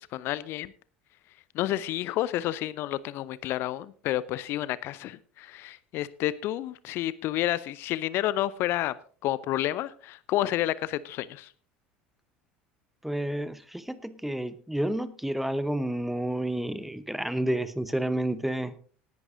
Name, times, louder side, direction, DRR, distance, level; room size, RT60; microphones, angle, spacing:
voice 1, 0.1-0.7 1.5-9.0 9.2-11.5, left 14 dB, 45° left, 19 dB, 0.5 m, -30 dB
voice 2, 13.0-18.7, right 1 dB, 5° right, 15 dB, 0.9 m, -30 dB
18.5 x 11.0 x 2.6 m, 0.42 s
figure-of-eight pair, 65°, 5 cm